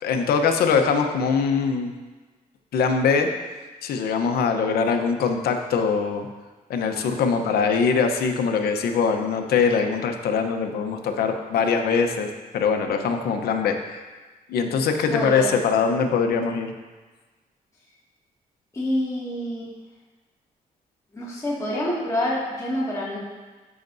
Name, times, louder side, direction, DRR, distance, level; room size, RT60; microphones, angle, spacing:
voice 1, 0.0-1.9 2.7-3.3 3.8-6.3 6.7-12.3 12.5-14.0 14.5-16.7, left 5 dB, 90° left, 5 dB, 0.8 m, -22 dB
voice 2, 15.0-15.5 18.7-19.7 21.1-23.2, left 1 dB, 20° left, -8 dB, 2.0 m, -27 dB
13.0 x 5.9 x 2.6 m, 1.3 s
cardioid pair, 110°, 15 cm